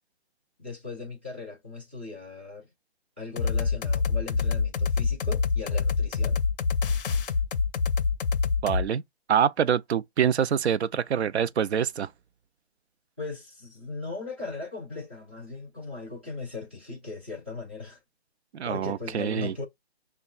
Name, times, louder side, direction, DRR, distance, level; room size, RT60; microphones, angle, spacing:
voice 1, 0.6-2.7 3.2-6.4 13.2-18.0 18.6-19.7, left 3 dB, 10° right, 0.4 m, -38 dB
sound 1, 3.4-8.9, left 5 dB, 55° left, 0.5 m, -26 dB
voice 2, 8.6-9.0 9.3-12.1 18.5-19.5, right 8 dB, 80° right, 0.5 m, -25 dB
5.7 x 2.2 x 2.3 m
hypercardioid pair, 160°, 32 cm